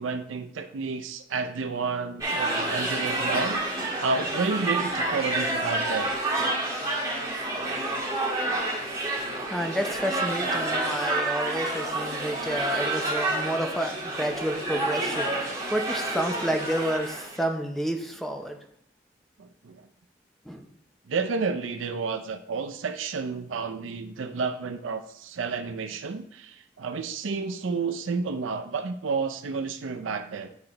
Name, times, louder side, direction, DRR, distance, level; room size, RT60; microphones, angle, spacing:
voice 1, 0.0-6.1 19.4-19.9 21.1-30.5, right 4 dB, 85° right, 7 dB, 0.5 m, -31 dB
sound 1, 2.2-17.4, right 2 dB, 20° right, 1.6 m, -29 dB
voice 2, 9.5-18.6 20.5-20.7, equal, ahead, 4 dB, 0.6 m, -30 dB
9.5 x 3.9 x 2.9 m, 0.69 s
head